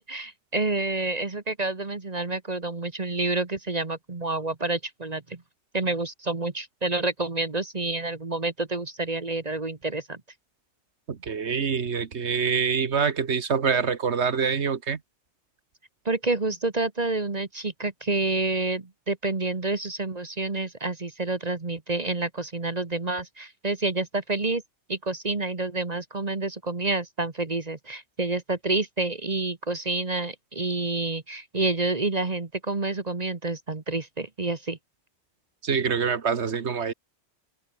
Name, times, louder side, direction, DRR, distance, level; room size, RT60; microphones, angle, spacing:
voice 1, 0.0-5.4 5.7-10.2 16.0-24.6 24.9-34.8, right 3 dB, 35° right, 1.5 m, -28 dB
voice 2, 11.1-15.0 35.6-36.9, right 6 dB, 80° right, 1.7 m, -25 dB
open air
omnidirectional pair, 1.1 m